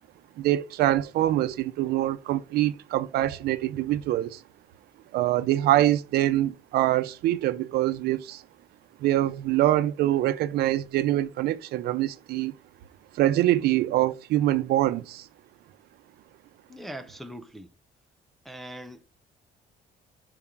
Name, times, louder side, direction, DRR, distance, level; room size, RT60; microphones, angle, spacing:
voice 1, 0.4-4.4 5.1-8.4 9.0-12.5 13.1-15.3, right 14 dB, 75° right, 0.7 m, -24 dB
voice 2, 16.7-17.7 18.4-19.1, right 1 dB, ahead, 0.4 m, -41 dB
5.8 x 4.9 x 3.6 m
cardioid pair, 165°, 17 cm